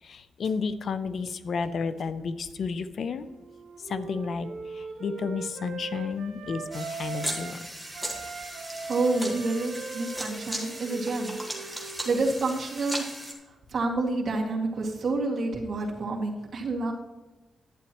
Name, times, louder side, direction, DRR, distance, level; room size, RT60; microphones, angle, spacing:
voice 1, 0.0-3.3 3.8-7.6, left 5 dB, 55° left, 12 dB, 0.4 m, -32 dB
Wind instrument woodwind instrument, 3.2-7.6 7.9-12.5, right 4 dB, 85° right, 1.2 m, -40 dB
sound 1, 6.7-13.3, right 1 dB, 5° left, 1.5 m, -37 dB
voice 2, 8.9-13.0 13.5-16.9, right 3 dB, 45° right, -3 dB, 2.1 m, -29 dB
11.5 x 9.3 x 3.0 m, 1.2 s
wide cardioid pair, 155°, 0 cm